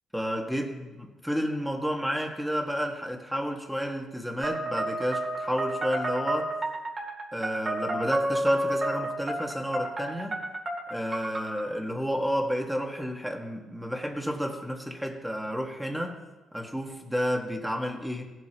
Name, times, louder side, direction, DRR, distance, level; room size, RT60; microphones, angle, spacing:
voice 1, 0.1-6.5 7.3-10.4 10.9-16.2 16.5-18.2, equal, ahead, 1 dB, 1.7 m, -31 dB
sound 1, 4.4-11.6, right 1 dB, 35° right, 2.4 m, -31 dB
17.0 x 7.7 x 3.0 m, 1.2 s
cardioid pair, 90°, 0 cm